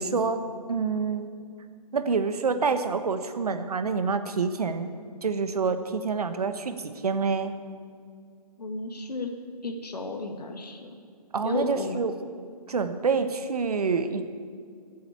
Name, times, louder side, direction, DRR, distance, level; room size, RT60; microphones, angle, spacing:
voice 1, 0.0-1.3 1.9-4.9 5.2-7.5 11.3-12.1 12.7-14.2, right 5 dB, 70° right, 9 dB, 1.2 m, -27 dB
voice 2, 8.6-9.3 9.6-10.9 11.4-12.0, left 3 dB, 85° left, 4 dB, 2.2 m, -33 dB
14.0 x 7.9 x 8.3 m, 2.1 s
hypercardioid pair, 160°, 20 cm